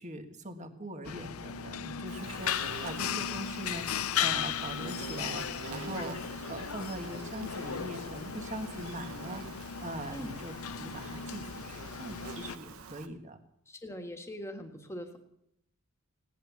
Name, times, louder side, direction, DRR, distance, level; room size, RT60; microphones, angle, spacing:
voice 1, 0.0-9.4 9.8-13.4, right 1 dB, 35° right, 7 dB, 1.5 m, -41 dB
sound 1, 1.0-12.6, left 8 dB, 80° left, 0.6 m, -36 dB
Insect, 2.1-13.1, right 4 dB, 80° right, 1.1 m, -46 dB
voice 2, 13.7-15.2, equal, 10° left, 4 dB, 1.7 m, -41 dB
17.0 x 11.0 x 7.1 m, 0.74 s
head